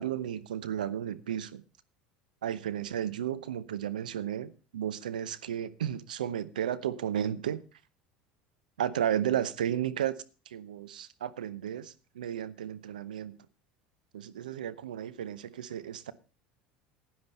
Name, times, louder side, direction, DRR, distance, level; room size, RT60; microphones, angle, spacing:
voice 1, 0.0-1.6 2.4-7.6 8.8-10.1 10.5-13.3 14.1-16.1, right 10 dB, 85° right, 0.8 m, -33 dB
11.0 x 9.9 x 5.4 m
hypercardioid pair, 80°, 4 cm